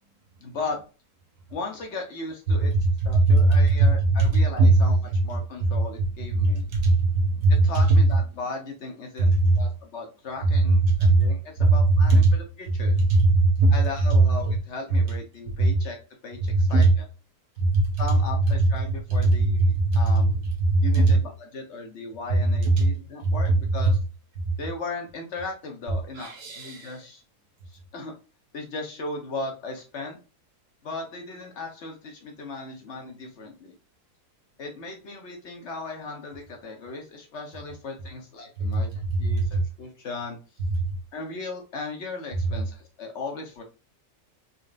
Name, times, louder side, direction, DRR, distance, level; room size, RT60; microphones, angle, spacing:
voice 1, 0.4-0.8 1.5-2.7 3.0-4.9 5.2-6.6 7.5-13.0 13.7-16.0 16.2-17.0 18.0-20.4 20.8-24.0 24.6-27.2 27.7-28.2 28.5-30.2 30.8-33.7 34.6-40.4 41.1-43.6, left 3 dB, 50° left, 3 dB, 1.1 m, -37 dB
voice 2, 2.8-3.7 4.3-4.7 6.4-7.6 9.2-9.6 10.7-11.3 11.6-12.3 12.9-13.8 14.1-14.2 15.6-15.7 16.5-16.9 17.6-17.8 19.2-20.3 20.6-21.1 22.6-22.9 23.2-23.3 26.2-27.0 38.6-38.8 39.5-39.6, right 2 dB, 85° right, 0 dB, 1.7 m, -19 dB
4.1 x 3.4 x 2.5 m, 0.34 s
omnidirectional pair, 1.6 m